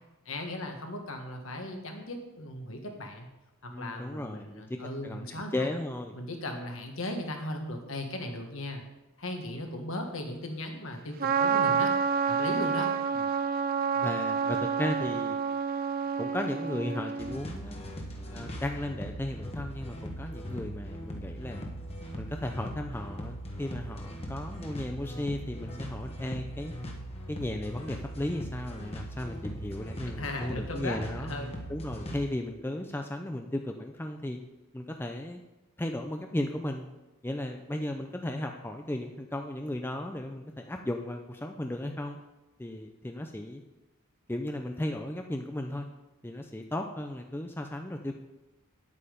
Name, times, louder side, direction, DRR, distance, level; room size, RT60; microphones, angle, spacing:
voice 1, 0.2-3.3 3.6-5.7 6.1-8.8 9.2-11.9 12.3-12.9 30.2-31.5, left 1 dB, 65° left, 3 dB, 1.6 m, -37 dB
voice 2, 3.7-6.1 8.2-8.4 13.1-13.3 14.0-15.4 16.2-17.8 18.3-21.7 22.2-26.7 27.3-31.3 31.7-34.4 34.7-35.4 35.8-36.9 37.2-42.2 42.6-43.6 44.3-45.9 46.2-48.2, left 1 dB, 10° left, 4 dB, 0.5 m, -35 dB
Trumpet, 11.2-17.4, right 6 dB, 40° right, 0.5 m, -28 dB
sound 1, 17.2-32.3, equal, 30° left, 1.3 m, -40 dB
9.8 x 8.4 x 5.2 m, 1.0 s
head